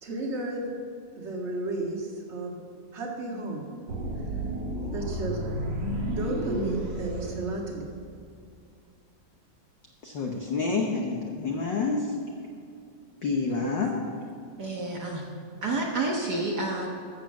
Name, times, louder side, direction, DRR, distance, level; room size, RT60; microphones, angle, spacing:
voice 1, 0.0-0.7 1.1-2.5 2.9-3.8 4.9-5.4 6.1-7.9, right 2 dB, 30° right, -1 dB, 1.5 m, -33 dB
sound 1, 3.9-8.1, right 1 dB, 50° right, 1.5 m, -32 dB
voice 2, 10.0-12.2 13.2-14.0, left 4 dB, 75° left, 1 dB, 1.0 m, -28 dB
voice 3, 14.6-15.2 15.6-16.9, right 2 dB, 65° right, 0 dB, 1.0 m, -29 dB
13.0 x 7.3 x 7.5 m, 2.4 s
omnidirectional pair, 3.4 m